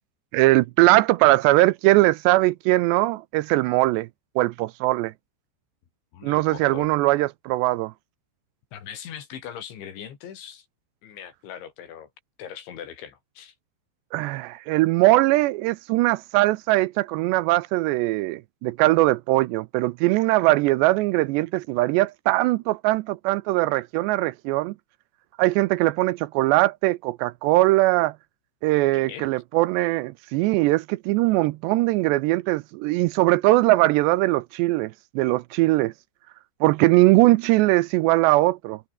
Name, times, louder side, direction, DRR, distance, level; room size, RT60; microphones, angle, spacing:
voice 1, 0.3-4.1 4.4-5.1 6.2-7.9 14.1-24.7 25.4-28.1 28.6-35.9 36.6-38.8, right 19 dB, 80° right, 2.7 m, -21 dB
voice 2, 6.1-6.9 8.7-10.7 11.0-12.1 12.4-13.6 28.9-29.3, left 9 dB, 80° left, 5.5 m, -40 dB
omnidirectional pair, 5.2 m